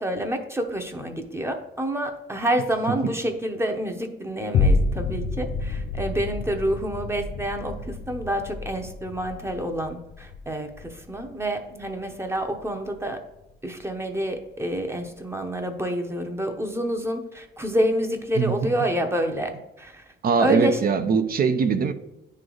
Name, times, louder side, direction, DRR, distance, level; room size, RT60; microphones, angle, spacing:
voice 1, 0.0-7.8 8.1-13.2 13.6-19.5 19.8-20.0 20.4-20.8, equal, 15° right, 4 dB, 0.7 m, -28 dB
sound 1, 4.5-13.1 13.6-13.7, left 3 dB, 65° left, 0.5 m, -29 dB
voice 2, 20.2-21.9, right 5 dB, 50° right, 9 dB, 0.5 m, -21 dB
9.4 x 3.2 x 3.8 m, 0.89 s
cardioid pair, 90°, 20 cm